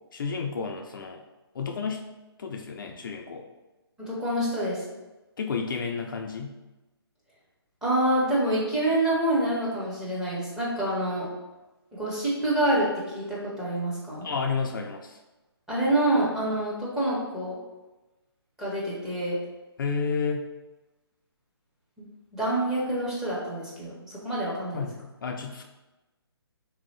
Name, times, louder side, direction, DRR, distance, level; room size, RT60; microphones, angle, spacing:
voice 1, 0.1-1.2 1.5-2.1 2.4-3.5 5.4-6.6 14.2-15.2 19.8-20.5 24.7-25.6, left 5 dB, 55° left, 3 dB, 0.4 m, -31 dB
voice 2, 4.0-4.8 7.8-11.3 11.9-14.3 15.7-17.5 18.6-19.4 22.0-22.1 22.3-24.8, right 1 dB, 5° right, -8 dB, 0.6 m, -27 dB
3.4 x 2.7 x 3.1 m, 1.1 s
hypercardioid pair, 150°, 14 cm